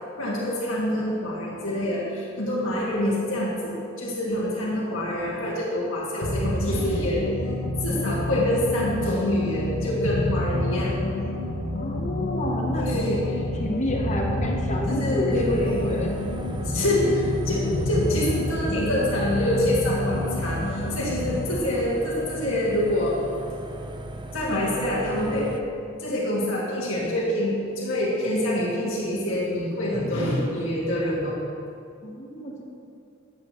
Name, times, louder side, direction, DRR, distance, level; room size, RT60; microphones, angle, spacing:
voice 1, 0.2-7.2 7.8-10.9 12.8-13.4 14.9-15.8 16.7-23.2 24.3-25.5 26.0-31.4, left 1 dB, 70° left, -6 dB, 1.9 m, -26 dB
sound 1, 6.2-21.6, left 1 dB, 90° left, 1.1 m, -28 dB
voice 2, 11.7-13.0 13.6-16.1 32.0-32.6, left 1 dB, 35° left, 0 dB, 0.9 m, -29 dB
sound 2, 15.3-25.6, right 1 dB, 25° right, 0.4 m, -37 dB
10.0 x 8.0 x 3.0 m, 2.5 s
head